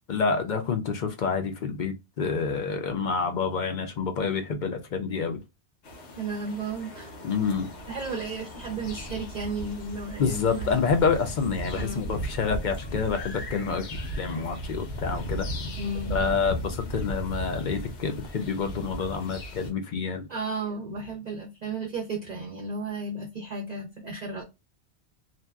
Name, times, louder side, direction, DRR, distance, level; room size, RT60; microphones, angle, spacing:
voice 1, 0.1-5.4 7.2-7.7 10.2-15.5 16.1-20.3, left 5 dB, 55° left, 0.6 m, -28 dB
sound 1, 5.8-19.7, equal, 80° left, 1.1 m, -36 dB
voice 2, 6.2-7.1 7.9-10.7 11.8-12.0 15.8-16.2 20.3-24.4, right 3 dB, 45° right, 0.6 m, -33 dB
2.6 x 2.2 x 2.2 m
omnidirectional pair, 1.1 m